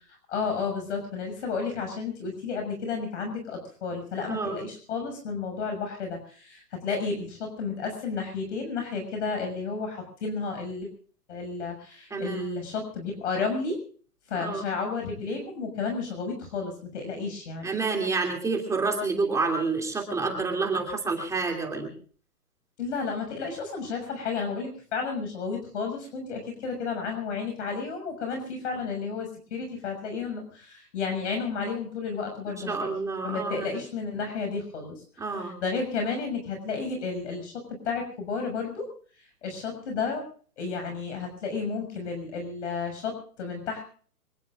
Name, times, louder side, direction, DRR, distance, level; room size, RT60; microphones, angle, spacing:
voice 1, 0.1-10.9 11.3-13.8 14.3-17.7 22.8-32.8 33.2-38.8 39.2-40.2 40.6-43.8, left 4 dB, 50° left, 3 dB, 6.6 m, -32 dB
voice 2, 12.1-12.5 14.4-14.6 17.6-21.9 32.5-33.7 35.2-35.6, right 4 dB, 5° right, 1 dB, 2.8 m, -28 dB
26.0 x 20.0 x 2.5 m, 0.44 s
hypercardioid pair, 140°, 46 cm